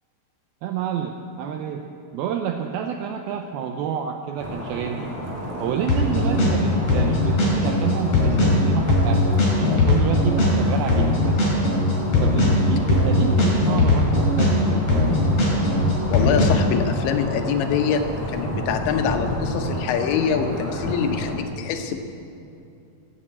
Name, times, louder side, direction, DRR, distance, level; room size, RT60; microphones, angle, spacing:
voice 1, 0.6-1.9 2.1-5.1 5.6-9.3 9.6-11.5 12.2-15.2, right 8 dB, 90° right, 4 dB, 2.1 m, -29 dB
sound 1, 4.4-21.3, equal, 5° right, 3.2 m, -31 dB
sound 2, 5.9-6.6 6.9-10.6 10.9-14.6 14.9-16.5, left 2 dB, 40° left, 5.2 m, -19 dB
voice 2, 16.1-18.0 18.3-22.0, left 7 dB, 90° left, 5 dB, 3.3 m, -24 dB
15.5 x 8.4 x 8.6 m, 2.7 s
omnidirectional pair, 5.0 m